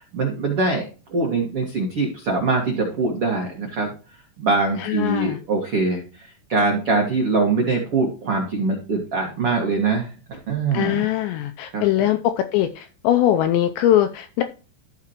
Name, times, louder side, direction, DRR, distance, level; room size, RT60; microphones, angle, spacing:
voice 1, 0.1-0.8 1.1-3.9 4.4-11.1 11.7-11.8, right 3 dB, 85° right, 0 dB, 1.2 m, -23 dB
voice 2, 4.8-5.4 10.7-14.4, left 12 dB, 85° left, 8 dB, 2.5 m, -21 dB
14.0 x 6.0 x 3.0 m, 0.35 s
omnidirectional pair, 5.8 m